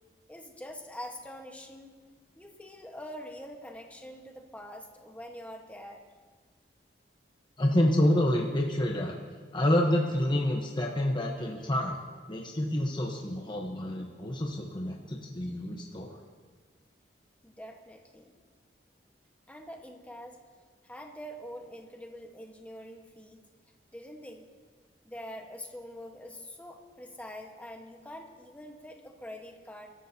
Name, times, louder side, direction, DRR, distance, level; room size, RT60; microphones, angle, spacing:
voice 1, 0.3-1.9 2.3-6.0 17.4-18.3 19.5-20.4 20.8-23.4 23.9-24.4 25.0-29.9, equal, 10° left, 2 dB, 1.3 m, -44 dB
voice 2, 7.6-9.1 9.5-12.0 12.3-16.2, left 1 dB, 25° left, 0 dB, 1.0 m, -28 dB
23.0 x 12.5 x 2.8 m, 1.5 s
head